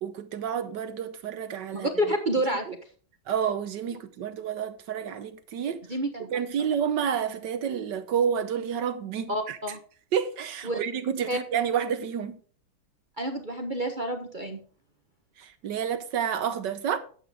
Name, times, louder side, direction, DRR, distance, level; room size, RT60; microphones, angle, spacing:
voice 1, 0.0-1.9 3.3-5.8 6.3-9.6 10.1-12.4 15.4-17.0, right 8 dB, 65° right, 1.3 m, -29 dB
voice 2, 1.7-2.6 5.9-6.3 9.3-9.8 10.6-10.8 11.3-11.4 13.2-14.6, right 1 dB, 30° right, 0.9 m, -28 dB
11.5 x 8.2 x 3.5 m
omnidirectional pair, 2.3 m